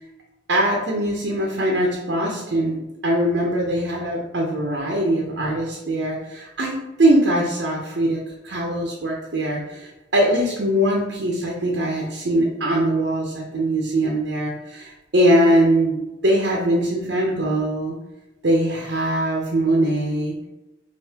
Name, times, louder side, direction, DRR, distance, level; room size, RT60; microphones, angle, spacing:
voice 1, 0.5-18.0 18.4-20.4, right 1 dB, 60° right, -2 dB, 0.7 m, -22 dB
5.6 x 2.6 x 2.8 m, 0.98 s
head